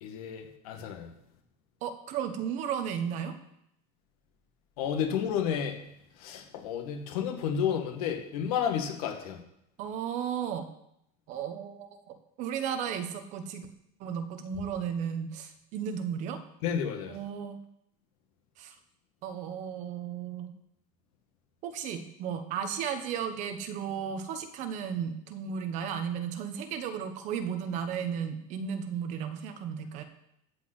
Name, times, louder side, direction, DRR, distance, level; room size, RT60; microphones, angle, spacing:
voice 1, 0.0-1.1 4.8-5.8 6.2-9.4 16.6-17.2, left 8 dB, 75° left, 4 dB, 2.1 m, -31 dB
voice 2, 1.8-3.3 9.8-10.7 11.3-13.7 14.0-16.4 17.1-17.6 18.6-18.7 19.2-20.5 21.6-30.0, right 8 dB, 40° right, 7 dB, 1.2 m, -34 dB
13.5 x 5.4 x 8.1 m, 0.78 s
cardioid pair, 170°, 19 cm